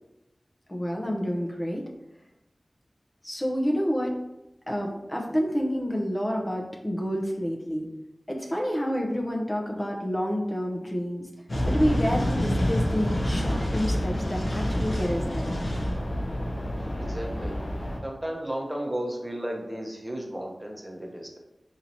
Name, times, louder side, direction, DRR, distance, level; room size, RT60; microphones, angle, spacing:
voice 1, 0.7-1.8 3.2-4.2 4.7-7.9 8.3-11.3 11.7-15.5, equal, 25° left, 0 dB, 0.6 m, -28 dB
sound 1, 11.5-18.0, equal, 65° left, 0.7 m, -27 dB
voice 2, 17.0-17.5 18.0-21.4, right 1 dB, 20° right, 0 dB, 0.7 m, -34 dB
4.3 x 2.8 x 2.6 m, 0.97 s
cardioid pair, 40°, 0 cm